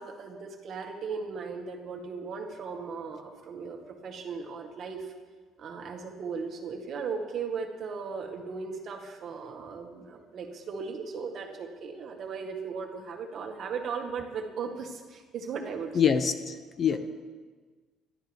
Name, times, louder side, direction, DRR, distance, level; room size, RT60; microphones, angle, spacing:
voice 1, 0.0-5.1 5.6-15.9 16.9-17.0, right 5 dB, 40° right, 3 dB, 1.9 m, -37 dB
voice 2, 15.9-17.0, left 7 dB, 30° left, 9 dB, 0.7 m, -25 dB
25.5 x 12.5 x 3.6 m, 1.4 s
cardioid pair, 170°, 0 cm